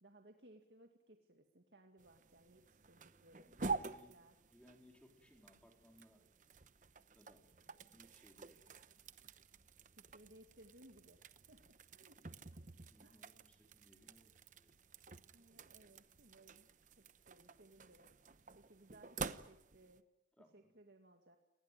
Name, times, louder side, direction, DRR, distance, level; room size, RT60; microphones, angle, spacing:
voice 1, 0.0-3.6 3.8-4.4 9.9-11.2 11.5-12.2 13.0-13.2 15.3-16.7 17.0-18.1 18.5-20.1 20.5-21.4, right 1 dB, 65° right, 4 dB, 2.1 m, -63 dB
sound 1, 2.0-20.0, right 4 dB, 45° right, 0.9 m, -49 dB
voice 2, 2.5-4.2 4.5-6.3 7.1-8.6 12.8-14.7 20.4-20.7, equal, 5° left, 2 dB, 3.9 m, -66 dB
29.0 x 20.0 x 9.1 m, 0.83 s
head